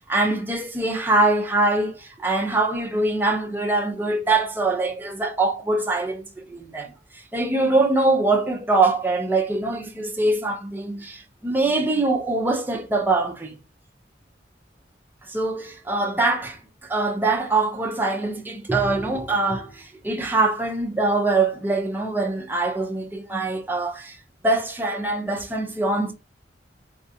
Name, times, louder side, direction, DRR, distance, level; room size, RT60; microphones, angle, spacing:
voice 1, 0.1-13.6 15.3-24.2 24.4-26.1, right 2 dB, 10° right, 0.6 m, -23 dB
4.2 x 2.4 x 2.7 m
head